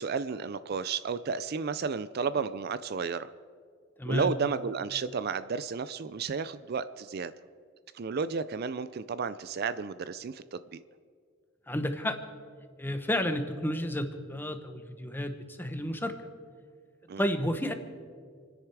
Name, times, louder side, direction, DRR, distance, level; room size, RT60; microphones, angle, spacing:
voice 1, 0.0-3.3 4.1-7.3 7.9-10.6 17.1-17.2, right 5 dB, 50° right, 15 dB, 0.4 m, -32 dB
voice 2, 4.0-4.3 11.7-12.2 12.8-16.1 17.2-17.7, left 1 dB, 10° left, 7 dB, 1.0 m, -31 dB
28.0 x 10.0 x 4.7 m, 2.1 s
head